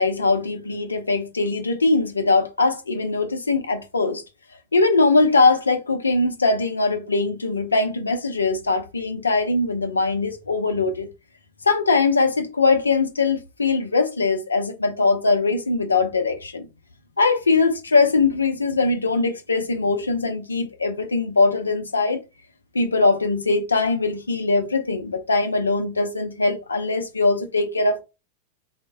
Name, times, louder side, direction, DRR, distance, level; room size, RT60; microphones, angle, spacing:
voice 1, 0.0-4.2 4.7-11.1 11.6-16.7 17.2-22.2 22.7-28.0, left 3 dB, 75° left, 0.5 m, -21 dB
3.2 x 2.1 x 2.5 m
figure-of-eight pair, 90°, 0 cm